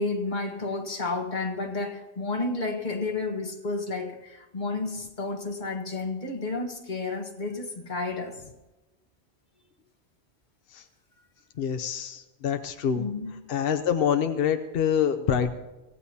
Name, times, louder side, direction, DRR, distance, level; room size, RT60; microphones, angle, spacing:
voice 1, 0.0-8.4 12.9-13.4, left 3 dB, 40° left, 4 dB, 1.5 m, -31 dB
voice 2, 11.6-13.0 13.5-15.5, left 8 dB, 60° left, 8 dB, 0.9 m, -26 dB
23.5 x 16.0 x 2.8 m, 1.1 s
omnidirectional pair, 1.2 m